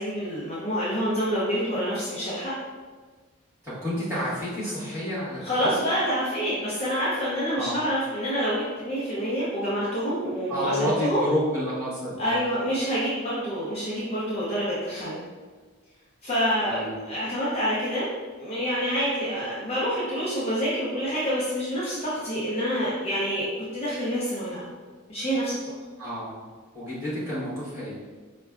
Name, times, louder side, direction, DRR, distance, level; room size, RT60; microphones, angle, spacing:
voice 1, 0.0-2.5 5.4-11.2 12.2-15.2 16.2-18.1 18.4-24.7 25.1-25.6, equal, 30° left, -8 dB, 0.5 m, -27 dB
voice 2, 3.6-5.7 7.5-7.8 10.5-12.5 16.6-17.0 26.0-26.3 26.7-28.0, equal, 10° right, -12 dB, 1.3 m, -29 dB
4.6 x 2.2 x 2.4 m, 1.4 s
head